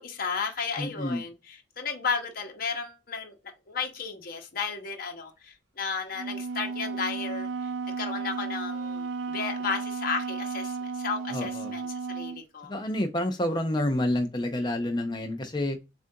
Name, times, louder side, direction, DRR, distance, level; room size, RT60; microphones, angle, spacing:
voice 1, 0.0-3.4 3.7-7.5 8.0-12.7, left 5 dB, 55° left, 1.0 m, -33 dB
voice 2, 0.8-1.2 11.3-11.7 12.7-15.8, left 1 dB, 25° left, 0.6 m, -28 dB
Wind instrument woodwind instrument, 6.2-12.4, right 4 dB, 70° right, 0.4 m, -34 dB
7.2 x 2.5 x 2.7 m
head